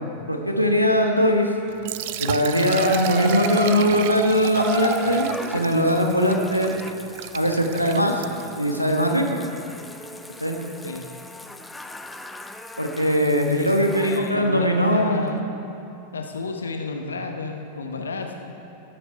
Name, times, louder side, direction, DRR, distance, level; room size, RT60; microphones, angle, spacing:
voice 1, 0.3-1.5 2.2-6.7 7.3-8.2 8.6-9.4 10.4-10.6 12.8-15.5, equal, 90° right, 2 dB, 1.1 m, -21 dB
Liquid, 1.7-8.6, right 12 dB, 50° right, 0.3 m, -33 dB
Water tap faucet / Bathtub (filling or washing), 2.7-14.3 15.2-15.3, left 1 dB, 5° left, 0.5 m, -36 dB
voice 2, 14.0-15.4 16.1-18.5, left 3 dB, 70° left, 4 dB, 1.0 m, -31 dB
18.5 x 6.7 x 4.6 m, 2.8 s
figure-of-eight pair, 90°, 0 cm